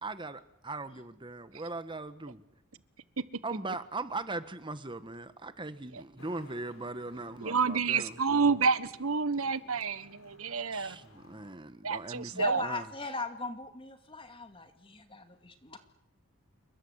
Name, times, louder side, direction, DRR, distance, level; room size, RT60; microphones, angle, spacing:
voice 1, 0.0-2.4 3.4-8.5 10.7-12.3 12.6-12.8, right 2 dB, 20° right, 1.4 m, -39 dB
Traffic noise roadway noise, 6.2-11.5, left 1 dB, 70° left, 5.3 m, -57 dB
voice 2, 7.4-11.0 11.8-12.6, right 5 dB, 75° right, 1.4 m, -29 dB
voice 3, 12.3-15.8, left 3 dB, 25° left, 2.3 m, -39 dB
29.0 x 22.0 x 8.2 m
head